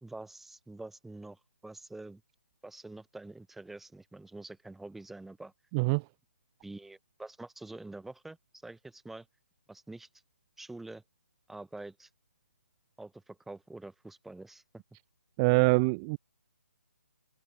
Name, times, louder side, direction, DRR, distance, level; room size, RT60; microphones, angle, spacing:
voice 1, 0.0-2.2 2.6-5.5 6.6-8.4 8.6-9.3 9.7-10.1 10.6-11.0 11.5-12.1 13.0-14.6, right 2 dB, 5° right, 3.1 m, -46 dB
voice 2, 5.7-6.0 15.4-16.2, right 30 dB, 20° right, 0.8 m, -24 dB
open air
figure-of-eight pair, 140°, 8 cm